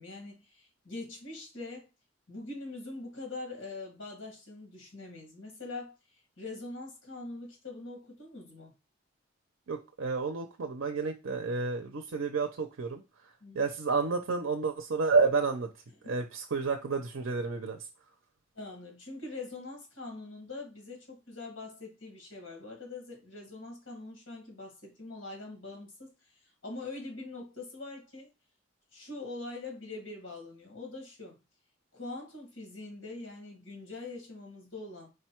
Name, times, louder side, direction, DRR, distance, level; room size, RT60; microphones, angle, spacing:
voice 1, 0.0-1.9 2.3-5.9 6.4-8.7 13.4-13.7 16.0-16.1 18.5-26.3 26.6-28.3 28.9-31.4 31.9-35.1, left 2 dB, 70° left, 1.8 m, -43 dB
voice 2, 9.7-13.3 13.5-15.7 16.0-17.9, right 4 dB, 80° right, 0.6 m, -30 dB
5.0 x 2.2 x 4.3 m
head